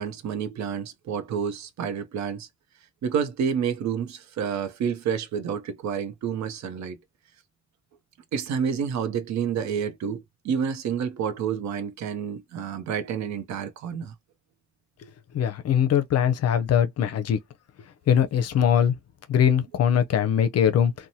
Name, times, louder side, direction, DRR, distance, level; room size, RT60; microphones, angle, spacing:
voice 1, 0.0-2.5 3.0-7.0 8.3-14.1, right 7 dB, 65° right, 0.7 m, -29 dB
voice 2, 15.3-17.4 18.1-18.9 19.3-20.9, left 8 dB, 55° left, 0.6 m, -21 dB
2.9 x 2.2 x 2.6 m
cardioid pair, 90°, 30 cm